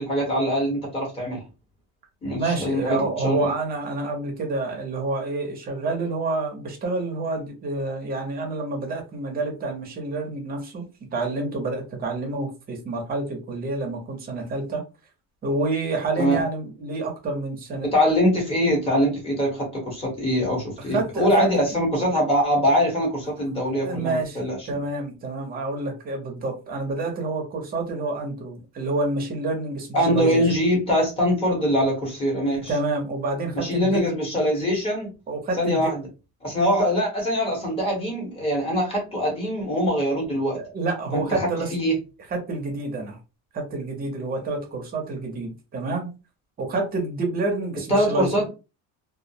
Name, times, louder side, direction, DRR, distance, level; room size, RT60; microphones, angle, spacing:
voice 1, 0.0-1.4 2.2-3.5 16.2-16.4 17.8-24.8 29.9-32.7 33.5-35.1 35.6-36.1 36.4-40.6 41.1-42.0 47.9-48.5, equal, 15° left, 0.9 m, -23 dB
voice 2, 2.3-14.8 15.4-17.9 20.9-21.5 23.7-30.5 32.7-34.0 35.3-35.9 40.5-41.7 42.3-43.2 43.5-46.1 46.6-48.4, right 3 dB, 25° right, 0.6 m, -28 dB
2.3 x 2.0 x 2.6 m
cardioid pair, 175°, 37 cm